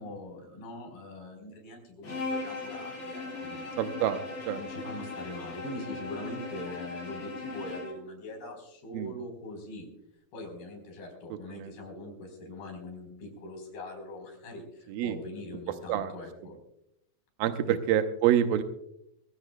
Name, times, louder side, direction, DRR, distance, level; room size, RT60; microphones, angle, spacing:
voice 1, 0.0-3.8 4.6-9.9 10.3-16.6 17.7-17.8, left 1 dB, 60° left, 3 dB, 5.8 m, -42 dB
Bowed string instrument, 2.0-8.0, left 3 dB, 25° left, 6.7 m, -38 dB
voice 2, 3.8-4.6 8.9-9.1 11.5-11.7 14.9-15.2 15.9-16.1 17.4-18.6, right 10 dB, 80° right, 7 dB, 2.2 m, -27 dB
23.5 x 16.0 x 2.2 m, 0.78 s
omnidirectional pair, 4.9 m